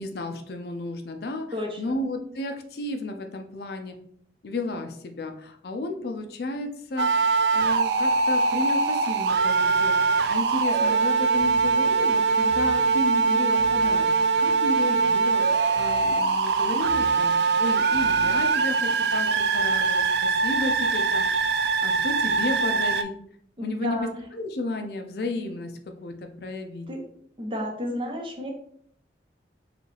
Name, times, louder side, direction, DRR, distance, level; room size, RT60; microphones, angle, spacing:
voice 1, 0.0-4.0 4.4-14.1 14.4-17.3 17.6-21.3 21.8-23.1 23.6-26.9, left 2 dB, 60° left, 5 dB, 0.4 m, -33 dB
voice 2, 1.5-1.9 23.6-24.1 26.9-27.0 27.4-28.5, left 1 dB, 30° right, 0 dB, 0.8 m, -31 dB
sound 1, 7.0-23.0, right 4 dB, 70° right, 0.3 m, -22 dB
sound 2, 11.4-11.9 12.5-13.0 13.6-14.1 15.7-16.3 16.8-17.4 17.9-18.4, left 1 dB, 75° left, 0.8 m, -43 dB
4.9 x 2.4 x 3.2 m, 0.64 s
head